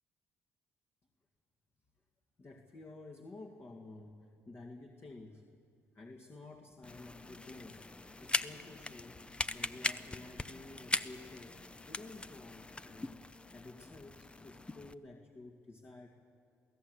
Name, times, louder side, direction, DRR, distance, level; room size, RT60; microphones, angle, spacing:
voice 1, 2.4-5.4 5.9-9.2 9.5-13.2 13.5-16.1, left 2 dB, 40° left, 2 dB, 2.1 m, -52 dB
sound 1, 6.8-14.9, left 2 dB, 15° left, 0.7 m, -40 dB
23.5 x 16.0 x 8.1 m, 2.3 s
supercardioid pair, 70°, 6 cm